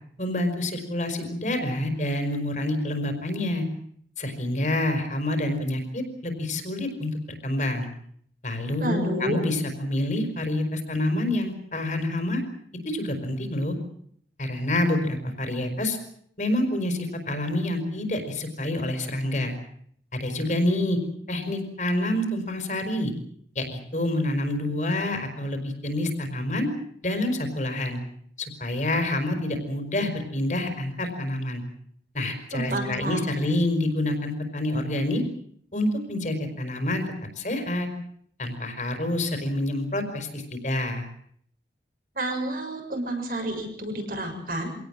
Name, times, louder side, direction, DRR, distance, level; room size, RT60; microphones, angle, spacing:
voice 1, 0.2-3.6 4.2-7.9 8.4-12.4 12.8-13.8 14.4-16.0 16.4-19.5 20.1-21.0 21.3-23.1 23.5-26.7 27.0-28.0 28.4-31.6 32.1-35.2 35.7-37.0 37.4-37.9 38.4-41.1, left 1 dB, 45° left, 6 dB, 4.9 m, -27 dB
voice 2, 8.8-9.4 32.5-33.5 42.2-44.7, right 1 dB, 50° right, 3 dB, 6.9 m, -30 dB
26.0 x 18.0 x 7.5 m, 0.65 s
head